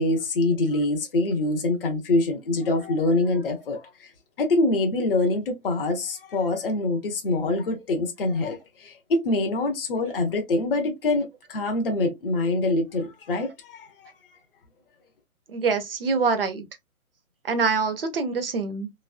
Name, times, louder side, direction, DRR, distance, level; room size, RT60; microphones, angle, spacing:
voice 1, 0.0-4.1 4.4-14.1, left 2 dB, 40° left, 0.8 m, -25 dB
voice 2, 15.5-16.6 17.5-18.9, right 4 dB, 40° right, 0.7 m, -25 dB
3.1 x 3.0 x 2.5 m
figure-of-eight pair, 145°, 43 cm